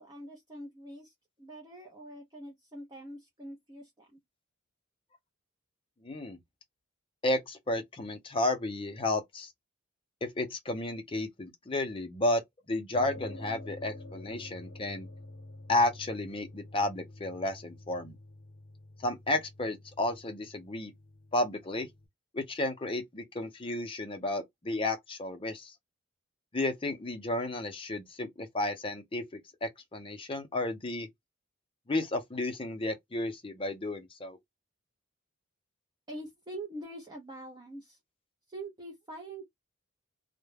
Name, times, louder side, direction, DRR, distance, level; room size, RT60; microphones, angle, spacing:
voice 1, 0.0-4.2 36.1-38.0 38.5-39.4, right 1 dB, 20° right, 0.5 m, -44 dB
voice 2, 6.0-6.4 7.2-9.5 10.2-12.4 12.7-15.1 15.7-18.2 19.0-20.9 21.3-21.9 22.3-25.7 26.5-31.1 31.9-34.4, left 2 dB, 25° left, 0.5 m, -32 dB
sound 1, 12.9-22.1, left 2 dB, 70° left, 0.7 m, -48 dB
2.2 x 2.1 x 3.2 m
head